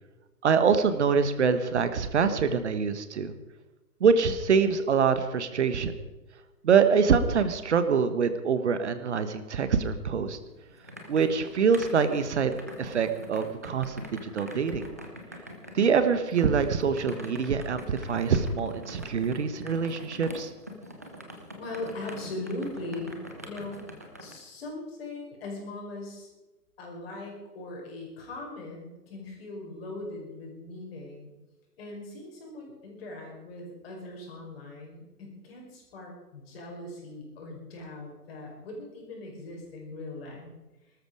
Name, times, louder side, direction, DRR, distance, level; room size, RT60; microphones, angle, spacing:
voice 1, 0.4-3.3 4.0-5.9 6.6-10.4 11.1-14.8 15.7-20.5, right 6 dB, 45° right, 10 dB, 1.4 m, -25 dB
sound 1, 10.3-24.3, equal, 10° right, 0.5 m, -44 dB
voice 2, 21.6-23.1 23.4-23.9 24.2-26.3 26.8-31.3 31.8-40.5, left 2 dB, 40° left, 0 dB, 5.4 m, -40 dB
19.0 x 13.0 x 4.9 m, 1.1 s
figure-of-eight pair, 130°, 47 cm